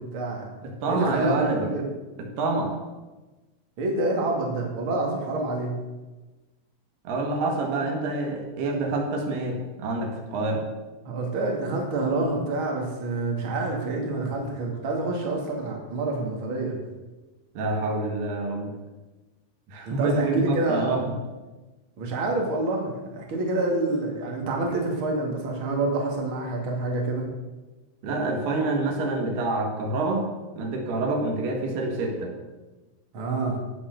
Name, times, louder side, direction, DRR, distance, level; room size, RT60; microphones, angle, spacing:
voice 1, 0.0-0.5 0.9-1.8 3.8-5.8 11.0-16.8 19.9-21.0 22.0-27.3 33.1-33.6, right 2 dB, 35° right, 0 dB, 2.7 m, -27 dB
voice 2, 0.6-1.7 2.4-2.7 7.1-10.6 17.6-18.7 19.7-21.1 28.0-30.2 30.6-32.3, right 2 dB, 80° right, 1 dB, 4.0 m, -27 dB
16.0 x 7.3 x 6.7 m, 1.2 s
omnidirectional pair, 4.6 m